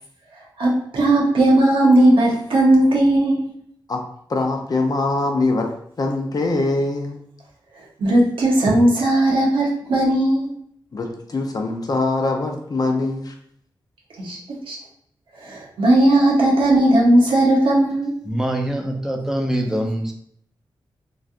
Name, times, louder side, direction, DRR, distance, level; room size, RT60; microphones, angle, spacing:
voice 1, 0.6-3.4 8.0-10.5 14.2-14.4 14.7-14.8 15.4-18.1, right 1 dB, 90° right, -3 dB, 0.9 m, -16 dB
voice 2, 4.3-7.2 10.9-13.3, left 2 dB, 45° left, 3 dB, 0.6 m, -23 dB
voice 3, 18.3-20.1, right 1 dB, 5° right, 2 dB, 0.6 m, -24 dB
3.1 x 2.5 x 2.5 m, 0.67 s
cardioid pair, 70°, 9 cm